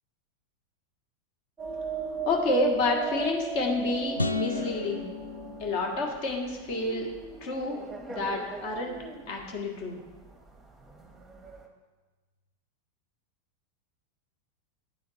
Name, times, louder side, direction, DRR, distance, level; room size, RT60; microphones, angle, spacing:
sound 1, 1.6-11.7, right 5 dB, 10° right, 0.9 m, -37 dB
voice 1, 2.3-5.1 5.6-7.1 7.4-7.8 8.1-8.9 9.3-10.0, left 2 dB, 45° left, 1 dB, 1.2 m, -29 dB
sound 2, 4.2-6.5, left 4 dB, 80° left, 0.3 m, -34 dB
10.0 x 3.5 x 4.1 m, 1.2 s
figure-of-eight pair, 90°, 0 cm